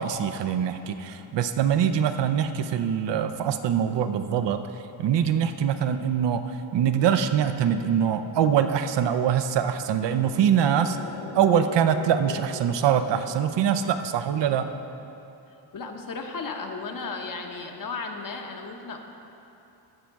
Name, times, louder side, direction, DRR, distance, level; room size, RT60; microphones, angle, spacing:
voice 1, 0.0-4.6 5.0-11.0 11.3-14.7, right 8 dB, 60° right, 9 dB, 0.7 m, -23 dB
sound 1, 9.9-14.4 14.7-14.8, left 6 dB, 75° left, 0.9 m, -40 dB
voice 2, 15.7-19.0, left 4 dB, 40° left, 3 dB, 1.0 m, -34 dB
14.5 x 5.1 x 4.6 m, 2.9 s
cardioid pair, 85°, 48 cm